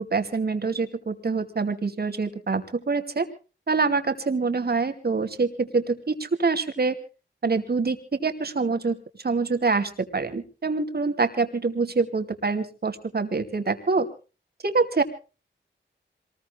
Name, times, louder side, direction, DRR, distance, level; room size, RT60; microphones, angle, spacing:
voice 1, 0.0-3.3 3.7-7.0 7.4-14.1 14.6-15.0, right 4 dB, 50° right, 7 dB, 2.6 m, -25 dB
26.0 x 20.5 x 2.3 m, 0.34 s
wide cardioid pair, 70°, 20 cm